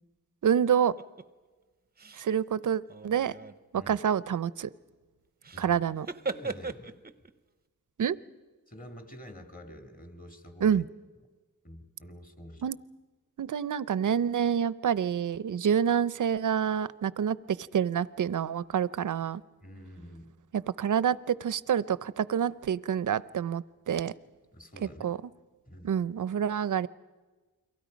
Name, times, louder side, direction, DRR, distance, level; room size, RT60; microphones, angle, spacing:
voice 1, 0.4-0.9 2.2-3.3 3.7-4.7 5.6-6.1 8.0-8.2 10.6-10.8 12.6-12.8 13.4-17.4 17.7-19.4 20.5-24.1 25.0-25.2 25.8-26.9, right 8 dB, 55° right, 18 dB, 0.6 m, -27 dB
sound 1, 1.0-1.3 2.0-2.3 2.8-3.6 5.4-5.7 6.0-7.3, right 4 dB, 25° right, 0.7 m, -38 dB
voice 2, 6.3-7.0 8.7-10.8 11.6-12.7 19.6-20.3 24.5-25.1 25.7-25.9, equal, 25° left, 5 dB, 2.3 m, -47 dB
29.5 x 23.0 x 5.2 m, 1.3 s
wide cardioid pair, 100°, 36 cm